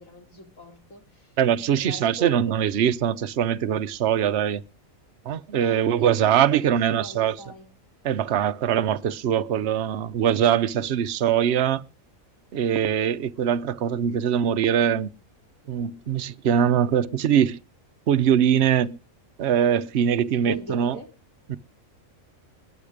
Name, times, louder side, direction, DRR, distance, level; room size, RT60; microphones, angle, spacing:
voice 1, 0.0-1.4 1.7-2.6 5.6-7.7 20.4-21.1, left 1 dB, 75° left, 4.1 m, -41 dB
voice 2, 1.4-4.6 5.3-7.4 8.0-11.8 12.5-15.1 15.7-17.6 18.1-19.0 19.4-21.0 21.5-21.6, right 9 dB, 55° right, 1.0 m, -22 dB
21.0 x 7.2 x 5.0 m
omnidirectional pair, 1.4 m